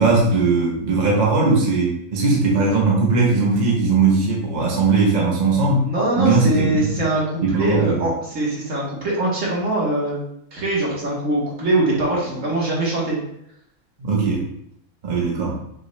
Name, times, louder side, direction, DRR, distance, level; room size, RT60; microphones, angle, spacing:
voice 1, 0.0-5.8 6.2-7.0 7.4-8.1 14.0-14.4 15.0-15.6, right 3 dB, 35° right, -4 dB, 0.9 m, -19 dB
voice 2, 5.8-10.2 10.5-13.2, right 2 dB, 60° right, -4 dB, 1.6 m, -22 dB
6.3 x 2.3 x 3.1 m, 0.74 s
omnidirectional pair, 1.6 m